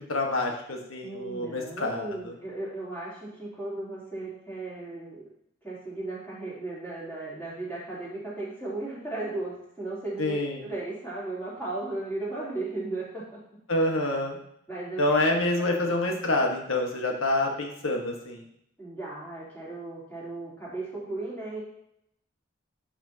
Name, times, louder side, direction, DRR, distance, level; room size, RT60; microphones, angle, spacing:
voice 1, 0.0-2.3 10.2-10.6 13.7-14.4 15.0-18.4, left 2 dB, 85° left, 1 dB, 1.4 m, -27 dB
voice 2, 1.0-5.2 5.6-10.4 10.6-13.2 14.7-16.0 18.8-21.6, right 2 dB, 10° left, -8 dB, 3.1 m, -36 dB
11.0 x 5.9 x 2.8 m, 0.74 s
head